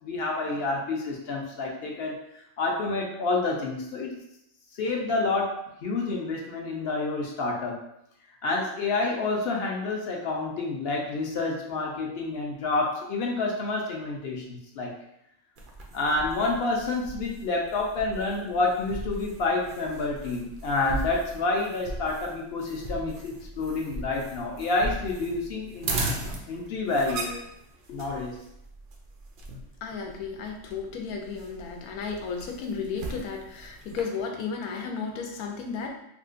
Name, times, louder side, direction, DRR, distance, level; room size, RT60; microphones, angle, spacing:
voice 1, 0.0-2.1 2.6-4.2 4.7-5.5 5.8-7.8 8.4-14.9 15.9-25.9 26.5-27.3 27.9-28.4, left 3 dB, 60° left, 0 dB, 0.7 m, -28 dB
sound 1, 15.6-34.0, right 2 dB, 85° right, 0.4 m, -38 dB
voice 2, 29.8-35.9, left 5 dB, 90° left, 2 dB, 1.1 m, -34 dB
3.6 x 2.4 x 2.4 m, 0.79 s
omnidirectional pair, 1.5 m